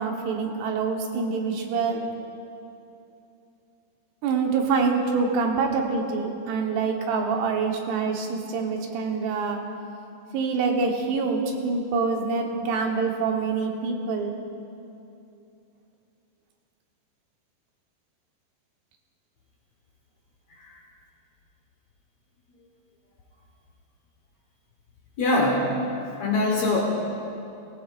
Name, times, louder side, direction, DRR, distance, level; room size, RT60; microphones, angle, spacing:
voice 1, 0.0-2.0 4.2-9.7 10.3-14.3, right 4 dB, 85° right, 2 dB, 3.2 m, -26 dB
voice 2, 25.2-25.8 26.1-26.8, left 2 dB, 60° left, -2 dB, 1.9 m, -23 dB
19.0 x 17.5 x 2.5 m, 2.7 s
omnidirectional pair, 4.6 m